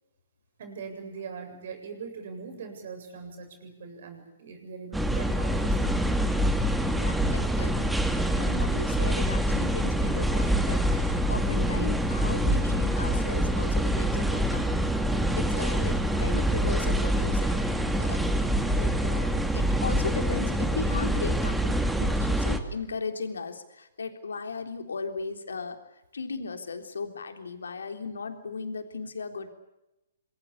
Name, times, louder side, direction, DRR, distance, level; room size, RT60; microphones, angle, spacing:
voice 1, 0.6-6.2 17.8-18.2, right 5 dB, 60° right, 6 dB, 7.7 m, -42 dB
sound 1, 4.9-22.6, equal, 5° right, 2.4 m, -25 dB
voice 2, 7.0-7.9 8.2-14.9 15.3-18.2 18.6-25.8 26.1-29.5, left 4 dB, 75° left, 6 dB, 3.6 m, -37 dB
26.5 x 22.0 x 8.5 m, 0.94 s
figure-of-eight pair, 120°, 0 cm